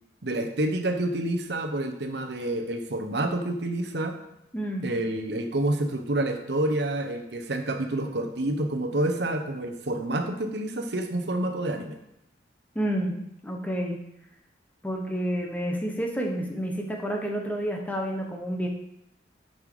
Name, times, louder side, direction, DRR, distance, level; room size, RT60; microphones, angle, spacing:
voice 1, 0.2-4.1 4.8-12.0, right 1 dB, 60° right, 6 dB, 0.9 m, -28 dB
voice 2, 4.5-4.9 12.7-13.1 13.4-14.0 14.8-18.7, equal, 10° left, 1 dB, 1.0 m, -29 dB
8.8 x 5.5 x 4.9 m, 0.83 s
head